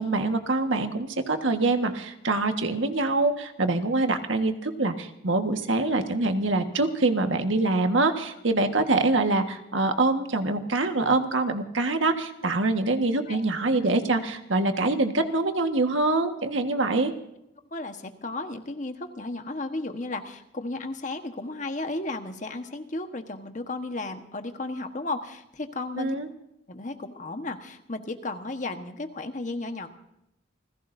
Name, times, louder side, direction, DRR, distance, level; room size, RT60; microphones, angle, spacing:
voice 1, 0.0-17.1 26.0-26.3, right 2 dB, 85° right, 6 dB, 1.6 m, -25 dB
voice 2, 17.7-26.1 26.7-29.9, left 2 dB, 40° left, 6 dB, 1.3 m, -34 dB
29.5 x 16.0 x 2.7 m, 0.84 s
head